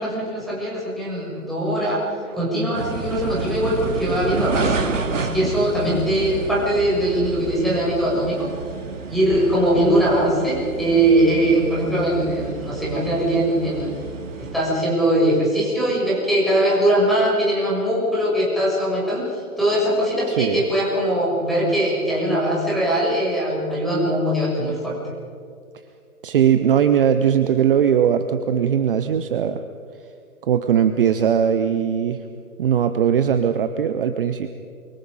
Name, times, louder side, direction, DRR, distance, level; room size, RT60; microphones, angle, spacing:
voice 1, 0.0-2.0 2.3-4.8 5.2-8.5 9.1-13.9 14.4-19.2 19.6-25.1, right 1 dB, ahead, -6 dB, 6.8 m, -21 dB
sound 1, 2.7-14.6, right 4 dB, 60° right, 2.6 m, -30 dB
voice 2, 20.3-20.6 26.2-29.6 30.4-32.2 32.6-34.5, right 8 dB, 40° right, 9 dB, 1.0 m, -19 dB
29.0 x 24.0 x 5.2 m, 2.3 s
figure-of-eight pair, 130°, 44 cm